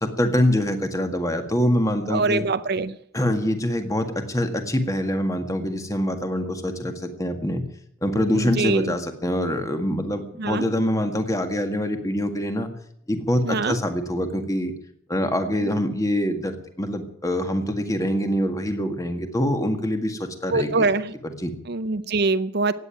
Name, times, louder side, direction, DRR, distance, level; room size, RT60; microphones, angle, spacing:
voice 1, 0.0-2.5 3.1-7.6 8.0-12.7 13.1-14.7 15.1-20.9 21.2-21.5, equal, 15° left, 6 dB, 1.9 m, -25 dB
voice 2, 2.1-3.0 8.3-8.9 10.4-10.7 13.4-13.8 20.5-21.1 21.7-22.7, right 3 dB, 55° right, 13 dB, 0.7 m, -23 dB
16.0 x 9.5 x 9.1 m, 0.70 s
head